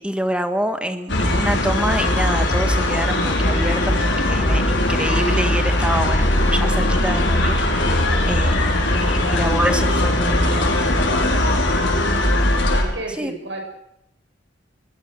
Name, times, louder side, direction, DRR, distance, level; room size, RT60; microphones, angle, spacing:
voice 1, 0.0-11.1 13.1-13.3, equal, 5° right, 8 dB, 1.7 m, -26 dB
sound 1, 1.1-12.8, left 1 dB, 80° left, 5.4 m, -19 dB
voice 2, 12.5-13.6, right 2 dB, 80° right, 3 dB, 6.7 m, -32 dB
21.5 x 21.0 x 6.5 m, 0.79 s
head